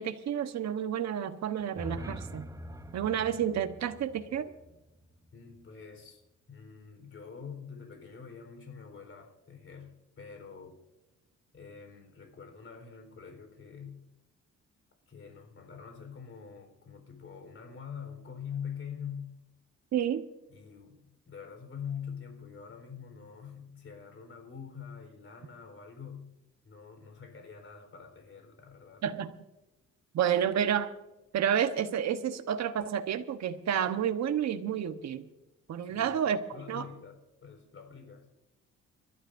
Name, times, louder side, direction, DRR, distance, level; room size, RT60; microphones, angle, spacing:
voice 1, 0.0-2.5 2.9-4.5 19.9-20.3 29.0-29.4 30.1-30.9 31.3-35.2 35.7-36.4 36.7-36.9, right 9 dB, 65° right, 8 dB, 1.1 m, -30 dB
sound 1, 1.6-5.7, equal, 10° right, 0.9 m, -45 dB
voice 2, 5.3-6.2 6.5-10.8 11.5-14.0 15.1-19.4 20.5-26.3 26.6-29.0 35.8-38.3, left 7 dB, 45° left, 5 dB, 4.2 m, -45 dB
29.5 x 12.0 x 2.6 m, 0.97 s
cardioid pair, 90°, 30 cm